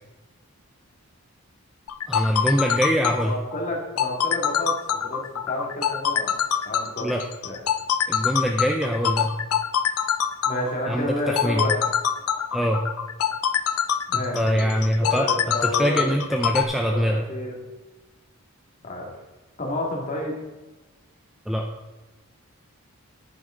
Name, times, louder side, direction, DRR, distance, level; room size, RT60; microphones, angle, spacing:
sound 1, 1.9-16.6, left 8 dB, 75° left, 0.6 m, -24 dB
voice 1, 2.1-3.3 7.0-7.2 8.1-9.3 10.9-11.7 12.5-12.8 14.1-17.2 21.5-21.7, equal, ahead, 2 dB, 0.5 m, -24 dB
voice 2, 3.2-6.4 6.7-7.1 7.4-7.6 10.4-11.8 14.1-14.7 15.0-16.1 16.9-17.6 18.8-19.2 19.6-20.4, left 1 dB, 35° left, -1 dB, 2.2 m, -30 dB
10.0 x 9.8 x 3.8 m, 1.1 s
head